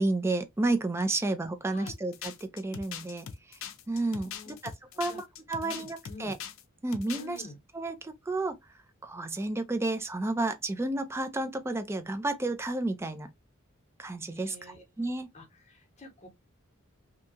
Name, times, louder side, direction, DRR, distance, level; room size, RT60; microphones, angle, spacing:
voice 1, 0.0-3.6 3.9-4.7 5.0-6.4 6.8-7.4 7.7-8.6 9.0-13.3 14.0-14.6 15.0-15.3, right 2 dB, 10° right, 0.3 m, -31 dB
sound 1, 1.9-6.6 6.9-7.4, left 7 dB, 65° left, 0.5 m, -41 dB
voice 2, 4.1-4.6 5.1-5.2 5.6-6.3 7.1-7.6 14.3-14.8 15.3-16.3, left 2 dB, 35° left, 0.9 m, -48 dB
2.7 x 2.3 x 2.6 m
head